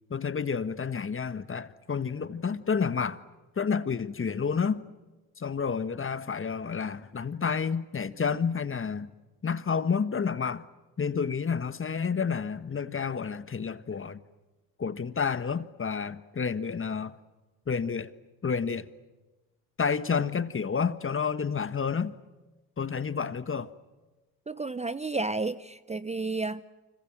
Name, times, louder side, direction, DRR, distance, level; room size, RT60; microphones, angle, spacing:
voice 1, 0.1-3.2 3.6-4.8 5.4-9.1 9.4-10.6 11.0-14.2 14.8-17.2 17.7-18.1 18.4-18.9 19.8-22.1 22.8-23.7, left 6 dB, 30° left, 1.5 m, -30 dB
voice 2, 24.5-26.6, right 3 dB, 15° right, 0.8 m, -31 dB
29.5 x 26.0 x 7.6 m
hypercardioid pair, 65°, 44 cm